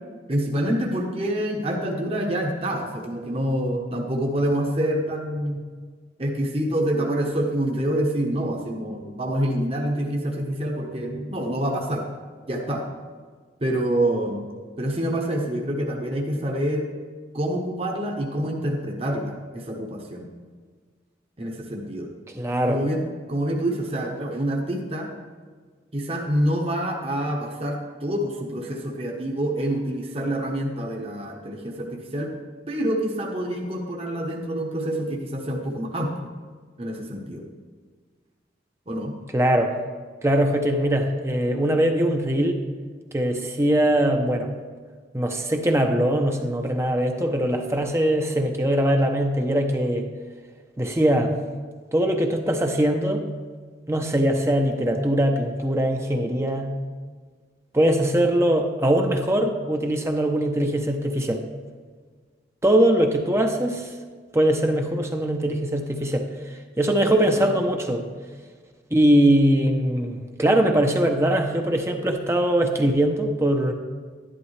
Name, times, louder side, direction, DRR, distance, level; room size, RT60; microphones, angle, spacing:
voice 1, 0.3-5.6 6.2-12.0 12.5-12.8 13.6-14.5 14.8-16.9 17.3-20.3 21.4-22.1 22.7-25.1 25.9-32.3 32.7-36.1 36.8-37.5 38.9-39.1 67.3-67.5, right 1 dB, 35° right, 0 dB, 1.1 m, -26 dB
voice 2, 22.3-22.8 39.3-39.7 40.2-42.6 43.1-44.5 45.1-50.1 50.8-51.3 51.9-53.2 53.9-56.7 57.7-61.4 62.6-63.9 64.3-68.0 68.9-73.7, right 1 dB, 15° right, 4 dB, 0.7 m, -21 dB
11.5 x 11.5 x 3.3 m, 1.5 s
head